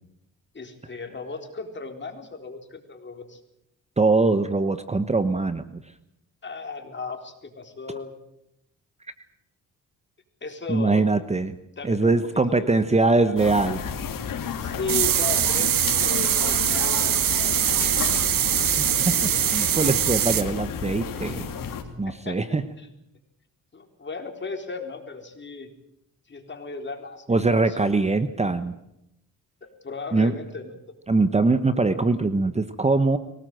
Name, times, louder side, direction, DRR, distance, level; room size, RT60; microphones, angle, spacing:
voice 1, 0.5-3.4 6.4-8.1 10.4-11.0 11.8-12.2 12.5-13.4 14.6-17.7 22.1-22.9 23.7-25.7 26.3-28.1 29.6-31.0, left 3 dB, 35° left, 4 dB, 4.2 m, -36 dB
voice 2, 4.0-5.8 10.7-11.6 11.8-13.8 18.8-21.5 22.0-22.6 27.3-28.7 30.1-30.3 31.1-33.2, right 3 dB, 20° right, 11 dB, 1.1 m, -22 dB
sound 1, 13.4-21.8, left 7 dB, 80° left, 3.0 m, -32 dB
sound 2, 14.9-20.4, right 11 dB, 85° right, 1.4 m, -23 dB
24.0 x 18.5 x 7.8 m, 0.83 s
cardioid pair, 100°, 33 cm